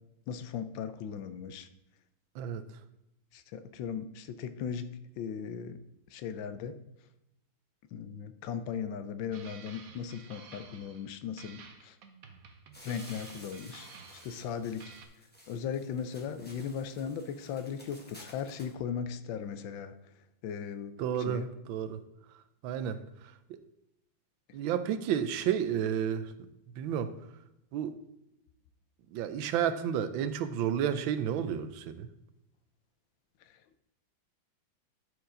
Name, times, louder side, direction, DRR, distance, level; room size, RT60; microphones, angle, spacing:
voice 1, 0.3-1.7 3.3-5.8 6.1-6.8 7.9-12.0 12.8-13.9 14.2-14.9 15.5-19.9 20.4-20.9 21.2-21.5, left 7 dB, 85° left, 11 dB, 1.4 m, -37 dB
sound 1, 9.3-11.1 11.4-14.5 14.8-15.1, right 5 dB, 55° right, 1.1 m, -52 dB
sound 2, 12.7-18.7, left 1 dB, 5° left, 1.3 m, -54 dB
voice 2, 21.0-22.0 22.6-23.0 23.5-23.6 24.5-26.3 26.8-27.1 27.7-28.0 29.1-32.1, right 9 dB, 90° right, 12 dB, 1.4 m, -31 dB
11.5 x 4.8 x 3.8 m, 0.86 s
omnidirectional pair, 2.1 m